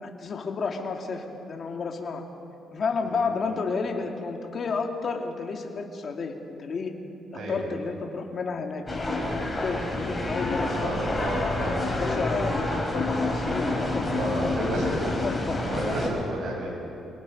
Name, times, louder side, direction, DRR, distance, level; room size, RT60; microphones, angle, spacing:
voice 1, 0.0-2.2 2.7-6.9 7.5-10.9 11.4-14.5 15.0-15.6, left 4 dB, 50° left, 3 dB, 2.3 m, -31 dB
sound 1, 8.9-16.1, left 2 dB, 20° left, 6.1 m, -28 dB
voice 2, 10.8-11.7 14.1-15.0 15.6-16.7, right 1 dB, 65° right, -2 dB, 7.1 m, -31 dB
28.0 x 18.5 x 5.4 m, 2.7 s
cardioid pair, 90°, 0 cm